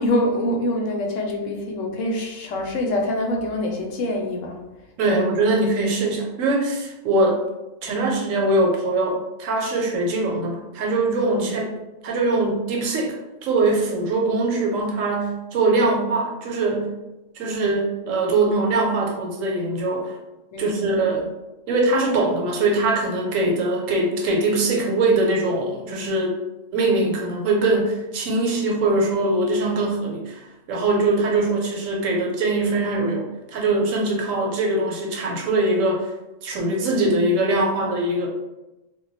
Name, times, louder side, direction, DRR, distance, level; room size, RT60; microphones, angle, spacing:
voice 1, 0.0-4.6 5.1-5.2 11.3-11.6 20.5-20.9, left 1 dB, 75° left, 1 dB, 0.9 m, -25 dB
voice 2, 5.0-7.4 7.8-11.7 12.0-13.2 13.4-16.9 17.4-20.1 20.6-21.3 21.7-26.3 26.7-30.4 30.7-36.1 36.4-38.3, right 2 dB, 80° right, 0 dB, 1.0 m, -22 dB
2.3 x 2.2 x 3.9 m, 1.0 s
omnidirectional pair, 1.4 m